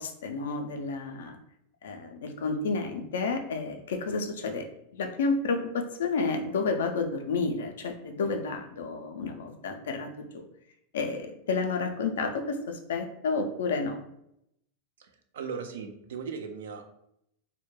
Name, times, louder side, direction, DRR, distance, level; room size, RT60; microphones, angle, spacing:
voice 1, 0.0-1.4 1.8-4.7 4.9-10.5 10.9-14.0, left 4 dB, 80° left, 5 dB, 0.4 m, -31 dB
voice 2, 15.0-16.8, right 6 dB, 75° right, 6 dB, 0.3 m, -38 dB
2.2 x 2.1 x 2.9 m, 0.77 s
hypercardioid pair, 105°, 0 cm